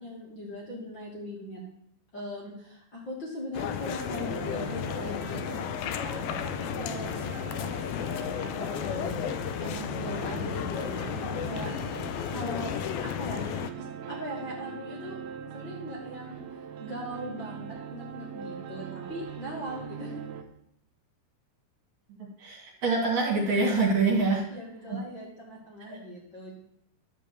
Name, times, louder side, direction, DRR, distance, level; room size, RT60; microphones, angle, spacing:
voice 1, 0.0-1.6 2.1-11.7 12.2-12.7 13.0-13.5 13.8-15.2 15.5-16.4 16.8-20.2 24.5-26.5, equal, 30° left, -5 dB, 2.5 m, -40 dB
sound 1, 3.5-13.7, left 10 dB, 80° left, 2.3 m, -33 dB
sound 2, 4.0-20.4, right 7 dB, 75° right, 2.7 m, -41 dB
voice 2, 22.4-24.4 24.9-25.0 25.9-26.0, right 3 dB, 50° right, -2 dB, 3.1 m, -25 dB
12.0 x 5.3 x 7.8 m, 0.71 s
omnidirectional pair, 4.8 m